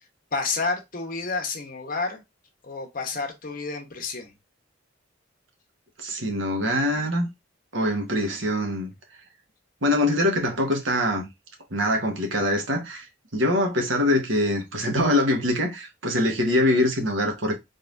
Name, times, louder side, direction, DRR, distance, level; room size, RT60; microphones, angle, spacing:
voice 1, 0.3-2.2 2.6-4.3, left 4 dB, 45° left, 1.2 m, -30 dB
voice 2, 6.0-7.3 7.7-8.9 9.8-11.3 11.7-13.0 13.3-17.6, left 1 dB, 85° right, 1.4 m, -23 dB
4.0 x 3.4 x 2.6 m
head